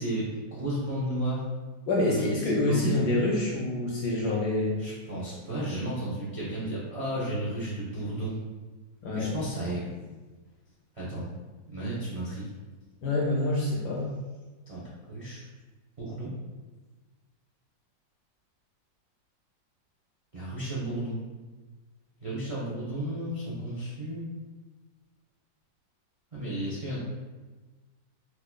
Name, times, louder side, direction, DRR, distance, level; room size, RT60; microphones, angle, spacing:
voice 1, 0.0-1.5 2.0-3.1 4.8-8.4 9.1-10.1 10.9-11.3 11.7-12.5 14.7-15.4 16.0-16.3 20.3-21.2 22.2-24.2 26.3-27.0, right 1 dB, 45° right, -9 dB, 0.4 m, -33 dB
voice 2, 1.9-4.8 9.0-9.3 13.0-14.1, left 2 dB, 70° left, -3 dB, 1.1 m, -26 dB
4.1 x 2.9 x 2.2 m, 1.3 s
omnidirectional pair, 2.0 m